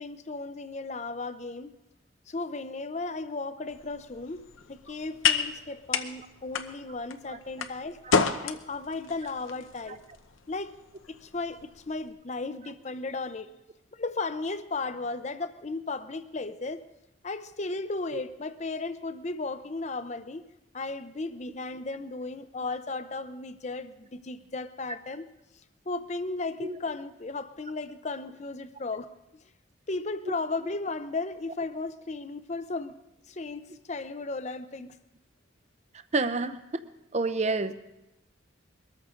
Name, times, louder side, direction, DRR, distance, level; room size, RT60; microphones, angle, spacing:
voice 1, 0.0-1.7 2.3-8.0 8.4-10.0 10.5-10.8 11.1-13.5 13.9-16.8 17.2-20.4 20.7-25.3 25.9-29.1 29.9-33.0 33.3-34.9, left 3 dB, 35° left, 12 dB, 0.6 m, -35 dB
sound 1, 3.7-12.1, left 6 dB, 85° left, 0.8 m, -32 dB
voice 2, 36.1-36.6 37.1-37.7, right 3 dB, 35° right, 12 dB, 0.6 m, -28 dB
22.0 x 13.5 x 3.7 m, 0.95 s
head